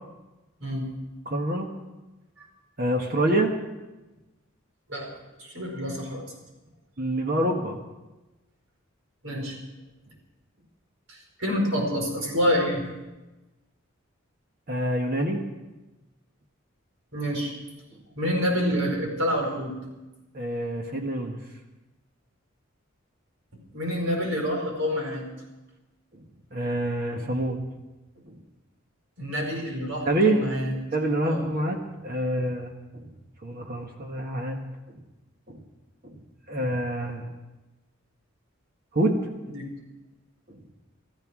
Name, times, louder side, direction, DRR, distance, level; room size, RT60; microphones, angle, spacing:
voice 1, 1.2-1.7 2.8-3.6 7.0-7.8 14.7-15.4 20.3-21.4 26.1-26.2 26.5-27.6 28.2-28.4 30.0-30.4 30.9-33.1 33.4-34.6 34.9-35.0 35.5-35.6 36.0-36.2 36.5-37.3 38.9-39.2 40.5-40.6, right 1 dB, 45° right, 2 dB, 1.5 m, -26 dB
voice 2, 5.4-6.3 9.2-9.6 11.1-12.8 17.1-17.5 18.2-19.7 23.5-25.2 29.2-30.7 31.2-31.4 39.5-39.6, equal, 75° right, 0 dB, 4.9 m, -27 dB
15.0 x 14.5 x 6.2 m, 1.1 s
head